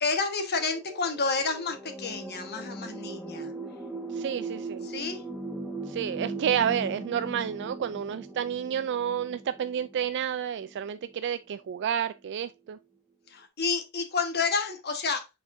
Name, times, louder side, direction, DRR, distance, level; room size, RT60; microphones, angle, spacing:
voice 1, 0.0-3.5 4.8-5.2 13.3-15.4, left 4 dB, 50° left, 1.4 m, -30 dB
sound 1, 0.6-11.3 12.2-12.3, right 2 dB, 5° right, 1.4 m, -39 dB
voice 2, 4.1-4.9 5.9-12.8, right 8 dB, 55° right, 0.3 m, -30 dB
7.0 x 5.5 x 2.6 m
head